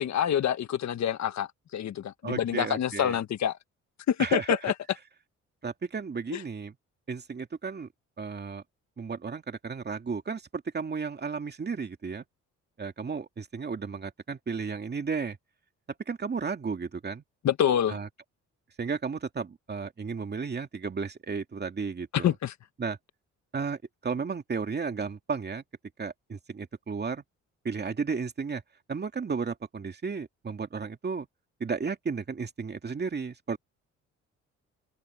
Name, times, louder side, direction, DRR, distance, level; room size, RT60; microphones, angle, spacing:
voice 1, 0.0-3.6 4.1-4.7 6.3-6.4 17.4-18.0 22.1-22.5, left 9 dB, 65° left, 1.6 m, -27 dB
voice 2, 2.2-3.2 4.2-4.6 5.6-6.8 7.1-7.9 8.2-8.6 9.0-12.2 12.8-15.4 16.1-17.2 17.9-18.1 18.8-22.3 22.8-23.0 23.5-25.6 26.0-27.2 27.6-28.6 28.9-31.3 31.6-33.6, right 5 dB, 35° right, 2.4 m, -33 dB
cardioid pair, 90°, 30 cm